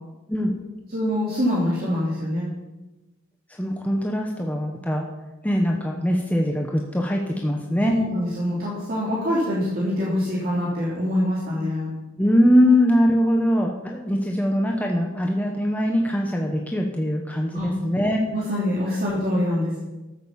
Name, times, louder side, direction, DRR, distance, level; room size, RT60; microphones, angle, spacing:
voice 1, 0.9-2.5 7.9-11.9 17.5-17.7 18.3-19.8, left 1 dB, 45° right, -6 dB, 3.0 m, -24 dB
voice 2, 3.6-5.1 5.4-7.9 12.2-18.2, equal, 5° left, 1 dB, 1.0 m, -22 dB
13.0 x 7.6 x 7.3 m, 1.1 s
head